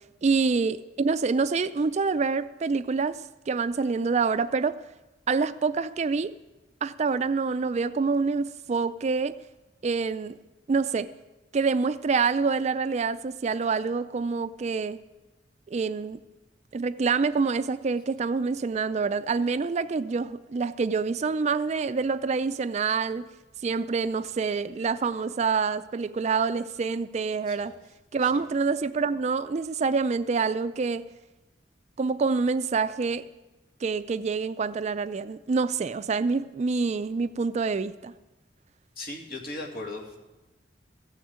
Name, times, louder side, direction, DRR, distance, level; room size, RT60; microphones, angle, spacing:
voice 1, 0.2-4.8 5.3-6.3 6.8-9.4 9.8-10.4 10.7-11.1 11.5-15.0 15.7-16.2 16.7-23.3 23.6-27.7 28.1-31.0 32.0-33.2 33.8-38.1, right 4 dB, 40° right, 14 dB, 0.4 m, -26 dB
voice 2, 27.5-27.8 28.2-28.4 39.0-40.2, left 2 dB, 55° left, 1 dB, 2.2 m, -38 dB
15.0 x 6.5 x 8.6 m, 1.1 s
head